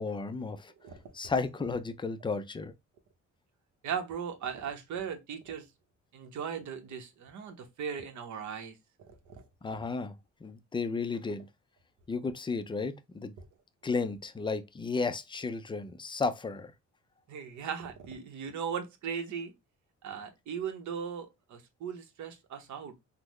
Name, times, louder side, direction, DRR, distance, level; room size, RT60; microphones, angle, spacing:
voice 1, 0.0-0.7 1.1-2.7 9.6-10.2 10.4-11.4 12.1-13.3 13.8-16.7, left 4 dB, 15° left, 0.4 m, -33 dB
voice 2, 3.8-5.7 6.1-9.4 13.4-13.5 17.3-19.5 20.0-22.9, right 7 dB, 70° right, 0.8 m, -38 dB
3.6 x 2.1 x 3.0 m
cardioid pair, 90°, 30 cm